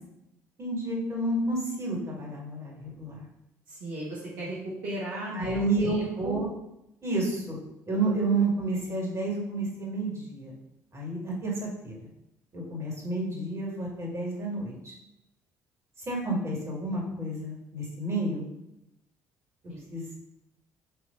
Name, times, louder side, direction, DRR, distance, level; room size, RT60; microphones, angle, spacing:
voice 1, 0.6-3.2 5.3-6.5 7.0-7.6 7.9-10.5 10.9-12.0 12.5-15.0 16.1-18.5 19.9-20.2, right 2 dB, 35° right, -3 dB, 2.4 m, -30 dB
voice 2, 3.7-6.4 19.7-19.9, right 1 dB, 65° right, -7 dB, 1.4 m, -36 dB
6.7 x 3.2 x 5.3 m, 0.85 s
figure-of-eight pair, 50°, 9 cm